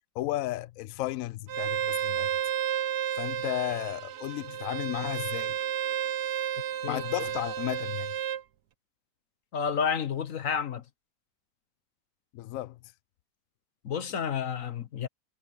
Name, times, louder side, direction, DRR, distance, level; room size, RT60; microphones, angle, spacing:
voice 1, 0.1-2.3 3.2-5.6 6.8-8.1 12.3-12.8, left 16 dB, 75° left, 0.8 m, -33 dB
Bowed string instrument, 1.5-8.4, right 10 dB, 65° right, 1.4 m, -32 dB
voice 2, 9.5-10.8 13.8-15.1, left 7 dB, 55° left, 1.2 m, -30 dB
omnidirectional pair, 1.9 m